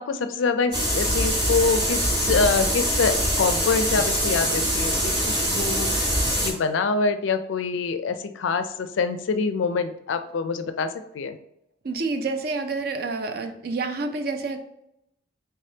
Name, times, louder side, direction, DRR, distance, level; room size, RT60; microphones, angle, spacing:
voice 1, 0.0-11.4, left 4 dB, 80° left, 9 dB, 0.4 m, -25 dB
sound 1, 0.7-6.5, equal, 20° right, 1.1 m, -23 dB
voice 2, 11.8-14.6, right 3 dB, 50° right, 7 dB, 0.4 m, -28 dB
3.4 x 3.4 x 2.7 m, 0.80 s
head